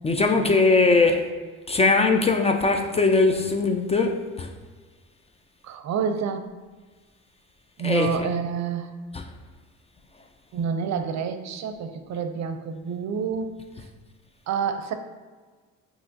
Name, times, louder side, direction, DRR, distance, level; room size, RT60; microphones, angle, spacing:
voice 1, 0.0-1.3 1.7-4.5 7.8-8.1 9.1-9.2, left 3 dB, 20° left, 0.4 m, -20 dB
voice 2, 5.6-6.5 7.8-8.9 10.5-13.9 14.5-14.9, right 6 dB, 65° right, 0.5 m, -28 dB
5.4 x 2.9 x 2.8 m
cardioid pair, 90°, 30 cm